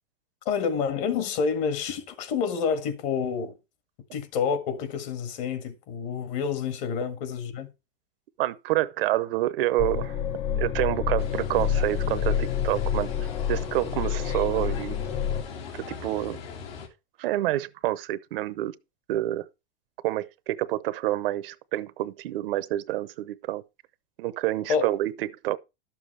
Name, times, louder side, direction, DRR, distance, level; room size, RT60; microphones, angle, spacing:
voice 1, 0.5-3.5 4.1-7.7 24.7-24.9, left 6 dB, 50° left, 1.8 m, -28 dB
voice 2, 8.4-10.2 10.5-13.1 13.5-15.0 15.7-16.4 17.2-18.7 19.1-19.5 20.0-23.6 24.2-25.6, right 15 dB, 70° right, 0.8 m, -28 dB
sound 1, 9.8-15.4, left 9 dB, 20° left, 0.4 m, -28 dB
sound 2, 11.2-16.9, left 5 dB, 80° left, 2.8 m, -40 dB
11.5 x 7.1 x 3.3 m
supercardioid pair, 145°, 29 cm